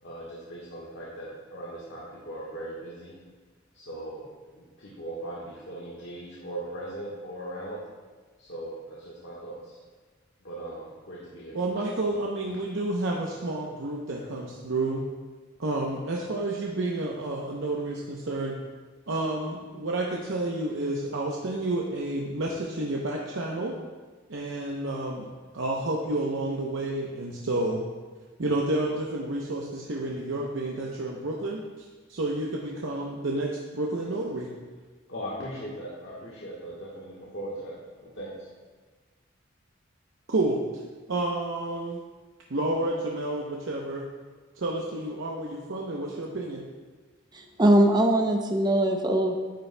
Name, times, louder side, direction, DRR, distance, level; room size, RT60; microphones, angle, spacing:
voice 1, 0.0-3.2 3.7-7.8 8.4-9.8 10.4-11.6 12.5-12.6 35.1-38.5, right 1 dB, 60° left, -6 dB, 1.3 m, -39 dB
voice 2, 11.5-15.0 15.6-18.6 19.1-23.7 24.3-25.3 25.5-27.8 28.4-31.6 32.1-34.5 40.3-40.6 41.1-42.0 42.5-44.1 44.6-46.6, right 2 dB, 70° right, -2 dB, 0.7 m, -30 dB
voice 3, 47.3-49.3, right 1 dB, 20° right, 4 dB, 0.6 m, -21 dB
10.0 x 8.1 x 2.2 m, 1.4 s
head